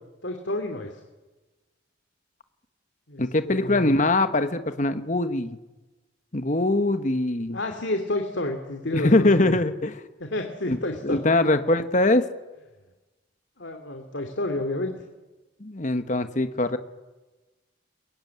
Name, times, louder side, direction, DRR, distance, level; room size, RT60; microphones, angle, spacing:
voice 1, 0.2-1.0 3.1-4.0 7.5-9.6 10.2-11.2 13.6-14.9, left 1 dB, 65° left, 4 dB, 2.5 m, -30 dB
voice 2, 3.2-5.6 6.3-7.6 8.9-9.9 10.7-10.8 11.0-12.2 15.6-16.8, left 2 dB, 40° left, 9 dB, 1.3 m, -22 dB
23.0 x 22.0 x 9.5 m, 1.1 s
head